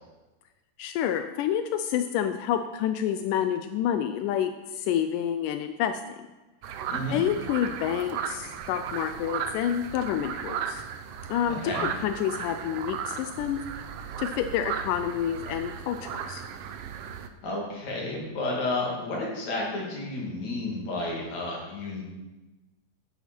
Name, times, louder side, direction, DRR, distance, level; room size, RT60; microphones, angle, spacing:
voice 1, 0.8-6.0 7.1-10.8 11.3-13.6 14.2-16.4, left 9 dB, 85° left, 8 dB, 2.2 m, -28 dB
sound 1, 6.6-17.3, right 7 dB, 80° right, 1.4 m, -36 dB
voice 2, 6.9-7.2 11.5-11.9 17.4-22.0, left 2 dB, 60° left, -2 dB, 3.7 m, -31 dB
13.0 x 9.6 x 4.5 m, 1.1 s
omnidirectional pair, 3.8 m